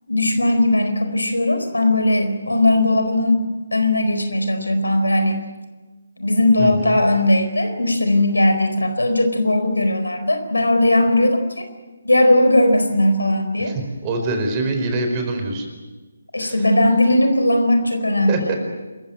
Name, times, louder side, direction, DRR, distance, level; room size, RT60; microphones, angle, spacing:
voice 1, 0.1-5.4 6.2-11.6 12.0-13.7 16.3-18.5, left 1 dB, 85° left, 7 dB, 4.4 m, -18 dB
voice 2, 6.6-7.0 13.6-15.7 16.4-16.6 18.3-18.5, right 2 dB, 25° right, 4 dB, 4.7 m, -24 dB
27.0 x 15.5 x 8.9 m, 1.3 s
figure-of-eight pair, 150°, 0 cm